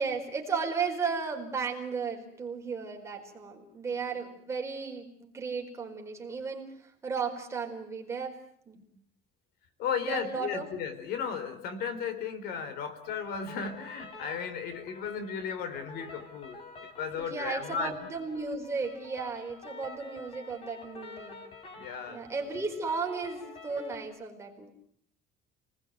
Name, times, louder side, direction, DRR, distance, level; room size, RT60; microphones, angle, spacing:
voice 1, 0.0-8.4 8.7-8.8 10.0-10.7 17.1-21.4 22.1-24.7, right 5 dB, 15° right, 1 dB, 4.5 m, -35 dB
voice 2, 9.8-16.6 17.0-18.0 21.7-22.3, left 6 dB, 65° left, 11 dB, 4.1 m, -35 dB
sound 1, 13.0-24.0, left 3 dB, 30° left, 4.9 m, -48 dB
29.5 x 20.0 x 9.3 m, 0.67 s
cardioid pair, 175°, 17 cm